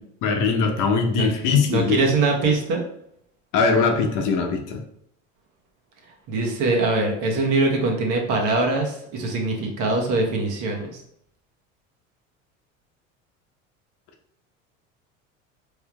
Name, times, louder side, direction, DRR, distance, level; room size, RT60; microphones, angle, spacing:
voice 1, 0.2-2.0 3.5-4.8, left 5 dB, 50° left, 3 dB, 0.9 m, -21 dB
voice 2, 1.2-2.8 6.3-11.0, right 3 dB, 55° right, 1 dB, 1.2 m, -23 dB
4.5 x 3.2 x 2.3 m, 0.73 s
hypercardioid pair, 75°, 38 cm